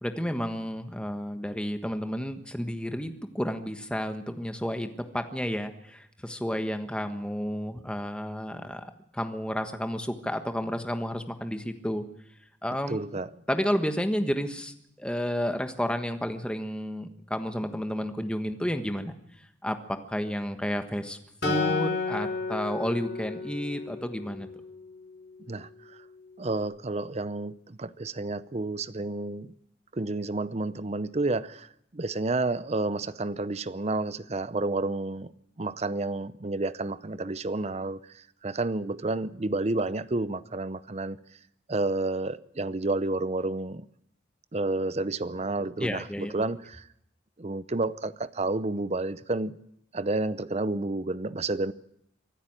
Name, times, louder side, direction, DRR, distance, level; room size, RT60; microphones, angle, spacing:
voice 1, 0.0-12.0 12.6-13.0 13.5-19.1 19.6-24.5 45.8-46.3, equal, 5° left, 1.4 m, -31 dB
voice 2, 12.9-13.3 25.5-26.0 26.4-29.5 29.9-35.3 35.6-41.2 41.7-43.9 44.5-46.9 47.4-49.6 49.9-51.7, right 2 dB, 35° right, 0.7 m, -30 dB
Acoustic guitar, 21.4-24.9, left 4 dB, 60° left, 4.6 m, -32 dB
24.5 x 13.0 x 8.9 m
head